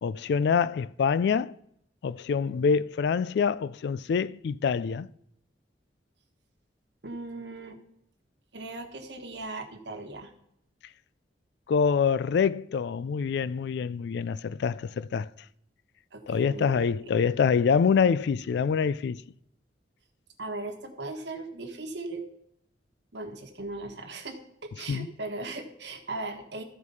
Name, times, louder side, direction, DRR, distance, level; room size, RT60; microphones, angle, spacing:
voice 1, 0.0-1.5 2.0-5.1 11.7-15.3 16.3-19.2 24.9-25.1, left 6 dB, 60° left, 0.3 m, -25 dB
voice 2, 7.0-7.8 8.5-10.3 16.1-16.9 20.4-22.2 23.1-26.6, right 2 dB, 65° right, 1.3 m, -38 dB
13.5 x 4.8 x 5.5 m
head